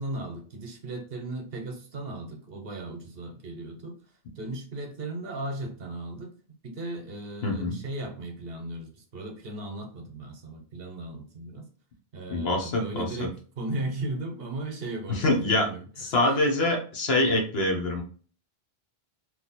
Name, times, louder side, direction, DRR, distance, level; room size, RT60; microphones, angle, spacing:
voice 1, 0.0-3.9 4.4-6.3 6.6-11.7 12.1-15.8 16.2-16.5, right 2 dB, 65° right, 3 dB, 1.0 m, -36 dB
voice 2, 7.4-7.8 12.3-13.0 15.1-15.7 16.0-18.0, left 2 dB, 70° left, 2 dB, 1.1 m, -25 dB
3.1 x 2.6 x 4.1 m, 0.42 s
omnidirectional pair, 1.1 m